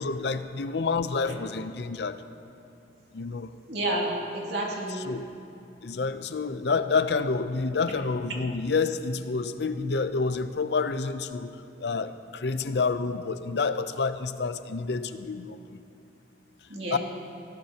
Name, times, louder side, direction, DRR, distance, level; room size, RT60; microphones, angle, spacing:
voice 1, 0.0-2.2 3.1-3.5 4.9-5.3 5.8-11.5 11.8-15.8 16.9-17.0, left 4 dB, 65° left, 11 dB, 0.6 m, -28 dB
voice 2, 3.7-5.0 16.7-17.0, right 1 dB, 65° right, -3 dB, 2.5 m, -30 dB
19.5 x 16.0 x 2.9 m, 2.8 s
head